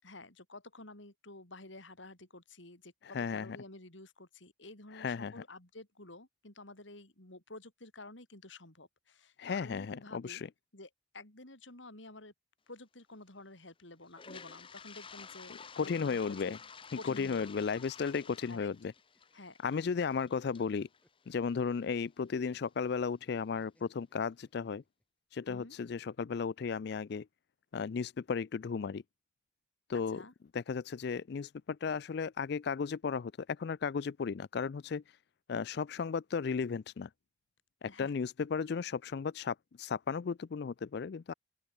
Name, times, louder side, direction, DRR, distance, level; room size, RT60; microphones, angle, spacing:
voice 1, 0.0-10.4 10.7-12.3 12.7-16.6 16.9-17.7 18.5-18.7 19.3-19.6 25.5-25.8 29.9-30.3 37.9-38.1, left 2 dB, 75° left, 4.6 m, -51 dB
voice 2, 3.0-3.6 4.9-5.3 9.4-10.5 15.8-16.6 17.0-18.9 19.6-20.9 21.3-24.8 25.3-27.3 27.7-29.0 29.9-30.2 30.5-35.2 35.5-37.1 37.8-41.3, left 5 dB, 55° left, 0.4 m, -35 dB
Toilet flush, 14.1-22.0, left 6 dB, 25° left, 1.0 m, -52 dB
sound 1, 18.8-19.4 19.7-21.9 23.6-25.0, equal, 5° left, 5.1 m, -69 dB
open air
head